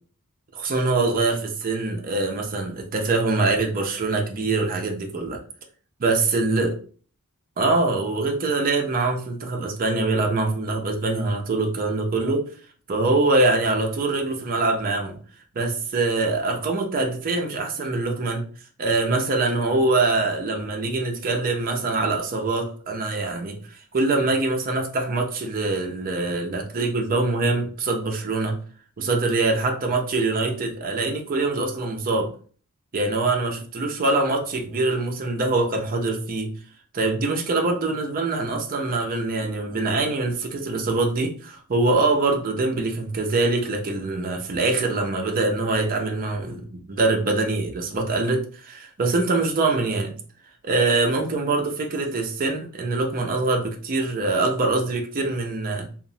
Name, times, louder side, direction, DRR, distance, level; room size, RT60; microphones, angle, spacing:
voice 1, 0.5-5.4 6.0-6.7 7.6-12.5 12.9-15.2 15.6-18.4 18.8-28.6 29.0-32.3 32.9-36.5 36.9-50.1 50.6-55.9, right 3 dB, 40° right, 3 dB, 0.5 m, -24 dB
2.9 x 2.0 x 2.6 m, 0.43 s
head